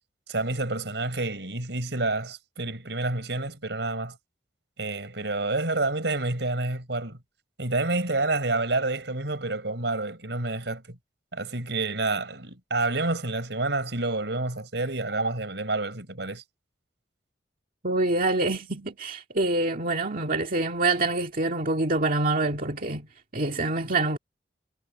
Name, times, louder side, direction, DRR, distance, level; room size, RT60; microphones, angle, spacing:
voice 1, 0.3-4.1 4.8-7.2 7.6-11.0 11.3-16.4, right 2 dB, 80° right, 4.4 m, -28 dB
voice 2, 17.8-23.1 23.3-24.2, right 2 dB, 50° right, 2.0 m, -26 dB
head